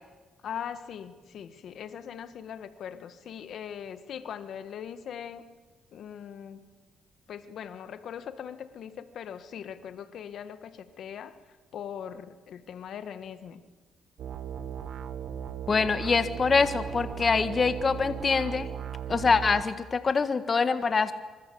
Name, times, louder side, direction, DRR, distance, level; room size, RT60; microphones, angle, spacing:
voice 1, 0.4-5.4 5.9-6.6 7.3-11.3 11.7-13.6, left 8 dB, 65° left, 11 dB, 1.7 m, -40 dB
sound 1, 14.2-19.6, right 8 dB, 70° right, 1.6 m, -37 dB
voice 2, 15.7-18.7 19.1-21.1, left 4 dB, 35° left, 11 dB, 1.6 m, -24 dB
25.0 x 25.0 x 8.7 m, 1.3 s
cardioid pair, 90°, 0 cm